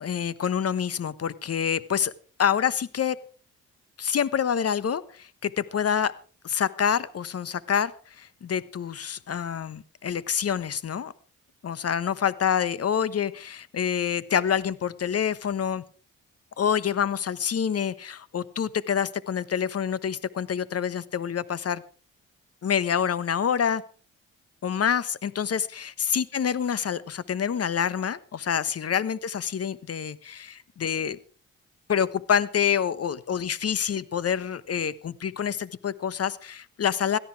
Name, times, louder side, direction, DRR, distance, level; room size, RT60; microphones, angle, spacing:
voice 1, 0.0-2.1 2.4-3.2 4.0-6.1 6.4-11.1 11.6-15.8 16.6-21.8 22.6-23.8 24.6-25.6 26.1-31.2 31.9-37.2, left 8 dB, 50° left, 18 dB, 1.2 m, -27 dB
17.0 x 13.0 x 4.7 m, 0.40 s
supercardioid pair, 60°, 30 cm